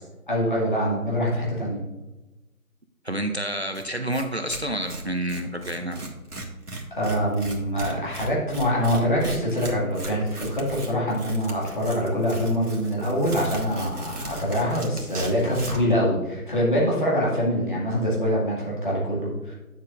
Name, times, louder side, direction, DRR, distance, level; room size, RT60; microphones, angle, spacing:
voice 1, 0.3-1.8 6.9-19.5, equal, 35° left, -5 dB, 2.0 m, -24 dB
voice 2, 3.0-6.0, right 1 dB, 45° right, 5 dB, 0.5 m, -29 dB
Tearing, 3.7-3.8 4.1-4.2 4.5-15.9, right 1 dB, 90° right, 1.7 m, -36 dB
9.7 x 7.1 x 2.5 m, 1.1 s
figure-of-eight pair, 170°, 45 cm